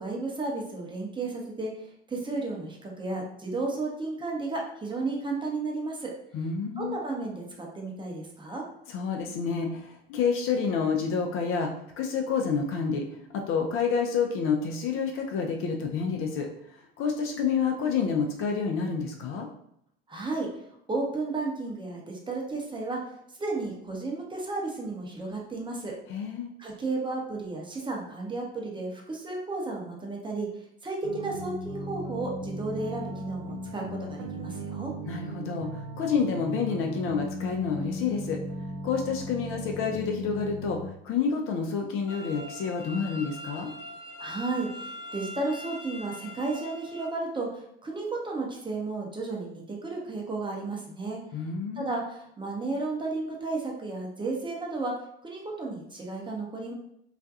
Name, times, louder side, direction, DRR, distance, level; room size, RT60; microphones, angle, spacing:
voice 1, 0.0-6.1 6.8-8.6 20.1-20.5 20.9-23.0 23.4-26.0 26.6-34.9 44.2-51.2 51.8-54.9 55.2-56.7, right 3 dB, 15° right, -1 dB, 0.6 m, -33 dB
voice 2, 6.3-7.0 8.9-11.7 12.0-19.5 26.1-26.5 35.1-38.4 38.8-43.7 51.3-51.9, left 5 dB, 45° left, 2 dB, 0.5 m, -29 dB
sound 1, 31.0-40.9, right 1 dB, 60° right, 0.6 m, -37 dB
sound 2, 42.1-47.1, left 1 dB, 65° left, 0.8 m, -42 dB
2.4 x 2.2 x 2.6 m, 0.72 s
hypercardioid pair, 70°, 31 cm